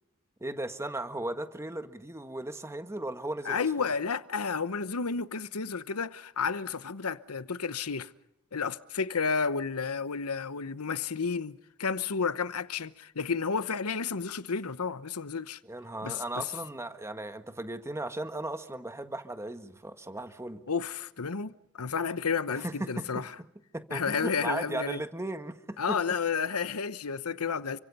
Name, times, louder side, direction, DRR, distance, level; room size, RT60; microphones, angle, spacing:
voice 1, 0.4-3.9 15.7-20.6 22.5-23.2 23.7-26.0, right 1 dB, 15° right, 1.7 m, -36 dB
voice 2, 3.4-8.1 8.5-15.6 16.0-16.5 20.7-23.3 23.9-25.0 25.8-27.8, left 5 dB, 80° left, 1.0 m, -31 dB
29.5 x 25.0 x 5.5 m
head